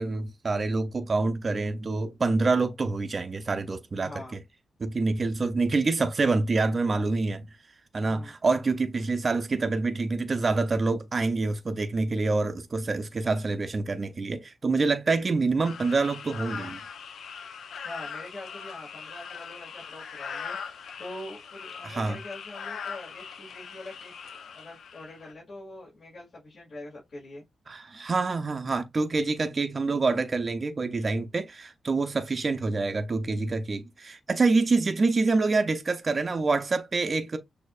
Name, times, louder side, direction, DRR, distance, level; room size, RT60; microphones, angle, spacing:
voice 1, 0.0-4.1 4.8-7.5 7.9-16.8 21.8-22.2 27.7-37.4, right 3 dB, 35° right, 0.5 m, -26 dB
voice 2, 4.0-4.4 7.9-8.3 17.8-27.4, left 1 dB, 50° left, 2.3 m, -44 dB
sound 1, 15.6-25.3, left 6 dB, 75° left, 0.6 m, -40 dB
6.3 x 2.7 x 2.4 m
cardioid pair, 110°, 0 cm